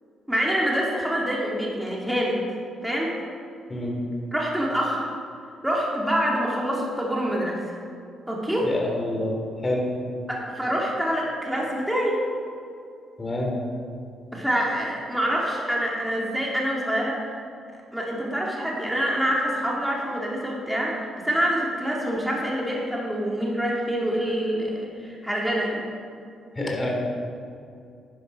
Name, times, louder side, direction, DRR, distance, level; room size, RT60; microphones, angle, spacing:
voice 1, 0.3-2.4 2.8-3.1 4.3-5.1 5.6-7.6 8.3-8.7 10.3-12.2 14.3-17.4 17.9-25.9, equal, 5° right, -4 dB, 2.4 m, -26 dB
voice 2, 8.6-9.4 9.6-9.9 13.2-13.6 26.6-26.9, left 1 dB, 25° left, 0 dB, 2.9 m, -27 dB
11.5 x 10.5 x 5.3 m, 2.4 s
cardioid pair, 90°, 0 cm